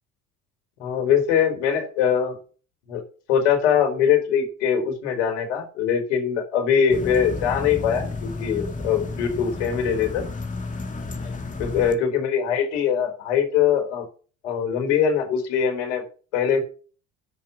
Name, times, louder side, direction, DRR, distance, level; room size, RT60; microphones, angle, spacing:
voice 1, 0.8-2.4 2.9-3.0 3.3-10.3 11.2-11.3 11.6-14.1 14.4-16.0 16.3-16.6, left 7 dB, 85° left, 4 dB, 4.6 m, -22 dB
sound 1, 6.9-11.9, left 3 dB, 20° left, 3.2 m, -32 dB
10.5 x 7.6 x 7.1 m, 0.39 s
hypercardioid pair, 75°, 35 cm